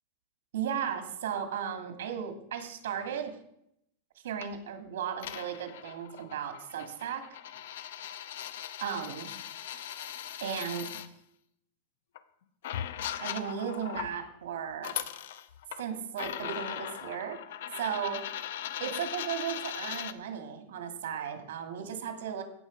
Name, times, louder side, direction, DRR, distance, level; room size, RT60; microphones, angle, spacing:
voice 1, 0.5-3.3 4.2-7.2 8.8-9.3 10.4-11.0 13.2-14.9 15.8-17.4 17.7-18.2 18.8-22.4, right 8 dB, 90° right, 6 dB, 2.6 m, -35 dB
sound 1, 4.4-4.6 5.2-11.1 12.1-12.2 12.6-14.1 14.7-15.8 16.2-20.1, left 11 dB, 65° left, 0.8 m, -39 dB
17.0 x 7.0 x 5.4 m, 0.76 s
supercardioid pair, 175°, 0 cm